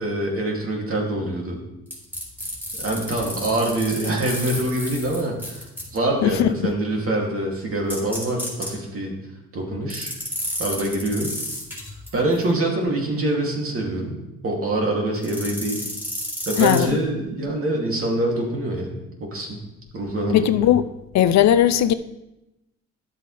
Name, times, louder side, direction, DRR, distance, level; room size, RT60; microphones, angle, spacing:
voice 1, 0.0-1.6 2.8-5.6 5.9-9.1 9.5-10.1 10.6-11.3 12.1-15.8 16.5-19.6 19.9-20.7, right 1 dB, 45° right, 2.6 m, -25 dB
sound 1, 1.9-6.0 7.9-8.7 9.9-12.4 15.2-16.9, equal, 5° right, 3.7 m, -31 dB
voice 2, 6.2-6.7 16.6-16.9 20.3-20.9 21.1-21.9, left 11 dB, 65° left, 0.5 m, -18 dB
11.5 x 7.6 x 3.3 m
cardioid pair, 90°, 30 cm